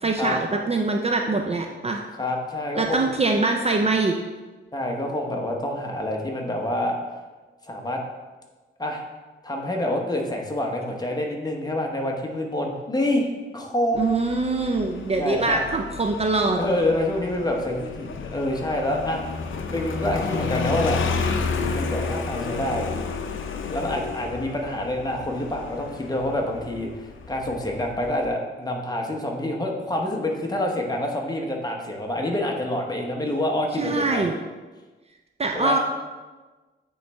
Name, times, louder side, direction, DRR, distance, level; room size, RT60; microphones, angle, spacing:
voice 1, 0.0-2.0 2.8-4.1 13.9-16.6 33.8-34.4 35.4-35.8, right 3 dB, 30° right, 2 dB, 0.4 m, -23 dB
voice 2, 2.2-3.0 4.7-7.0 7.7-8.0 8.8-9.0 9.4-13.3 13.5-14.2 15.2-15.6 16.5-19.2 19.7-21.0 21.7-22.9 23.7-34.2 35.5-35.8, left 1 dB, 20° left, 0 dB, 0.8 m, -27 dB
Motorcycle, 14.0-28.3, left 4 dB, 70° left, 0.5 m, -31 dB
8.8 x 3.1 x 3.4 m, 1.3 s
wide cardioid pair, 130°, 21 cm